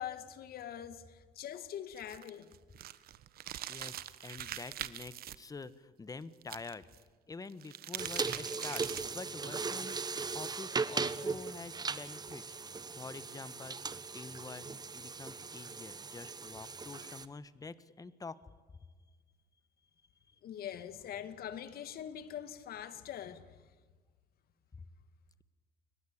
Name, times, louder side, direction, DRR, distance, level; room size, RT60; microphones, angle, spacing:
voice 1, 0.0-2.6 20.4-23.6, left 10 dB, 65° left, 2.3 m, -43 dB
sound 1, 1.9-5.4 6.4-7.0 7.5-9.2, right 12 dB, 65° right, 1.3 m, -43 dB
voice 2, 3.7-6.8 7.3-10.0 10.3-18.4 20.3-20.4 20.7-20.8 24.7-24.8, left 4 dB, 20° left, 1.4 m, -47 dB
sound 2, 8.0-17.3, right 4 dB, 25° right, 1.3 m, -38 dB
29.5 x 22.5 x 8.8 m
cardioid pair, 110°, 17 cm